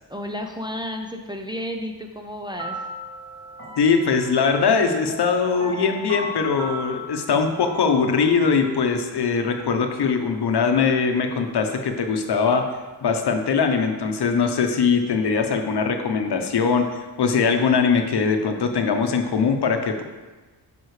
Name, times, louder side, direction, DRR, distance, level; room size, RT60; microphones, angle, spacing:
voice 1, 0.1-2.8, equal, 10° right, 2 dB, 0.6 m, -32 dB
sound 1, 2.5-8.9, equal, 45° right, 2.5 m, -36 dB
voice 2, 3.8-12.7 13.0-20.0, left 5 dB, 65° left, 5 dB, 0.9 m, -21 dB
9.2 x 5.5 x 3.3 m, 1.2 s
cardioid pair, 100°, 43 cm